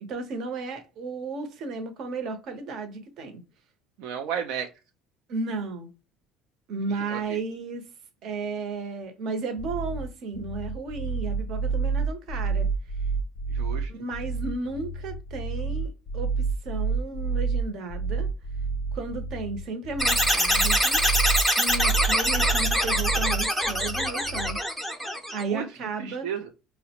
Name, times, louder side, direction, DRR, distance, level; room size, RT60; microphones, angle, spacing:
voice 1, 0.0-3.4 5.3-5.9 6.7-7.8 8.2-12.7 13.9-16.3 16.6-18.3 18.9-21.0 21.6-24.6 25.3-26.3, right 3 dB, 50° right, 0.7 m, -34 dB
voice 2, 4.0-4.7 6.9-7.4 13.5-13.9 25.5-25.7 26.0-26.5, right 8 dB, 75° right, 0.4 m, -33 dB
sound 1, 9.6-24.6, right 4 dB, 45° left, 0.4 m, -29 dB
sound 2, 20.0-25.4, equal, 5° right, 0.6 m, -24 dB
4.8 x 2.1 x 2.8 m
cardioid pair, 160°, 0 cm